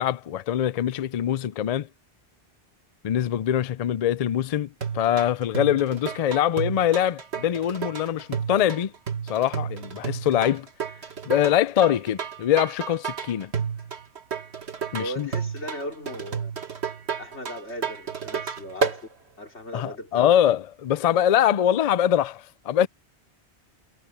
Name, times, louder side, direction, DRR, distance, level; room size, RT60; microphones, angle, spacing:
voice 1, 0.0-1.9 3.0-4.7 4.9-8.9 9.3-10.7 11.2-13.5 14.9-15.3 19.7-22.9, left 10 dB, 55° left, 0.4 m, -23 dB
sound 1, 4.8-19.0, right 6 dB, 70° right, 1.9 m, -31 dB
voice 2, 15.0-16.5 17.2-19.1 19.4-20.5, equal, 90° left, 3.7 m, -37 dB
omnidirectional pair, 1.1 m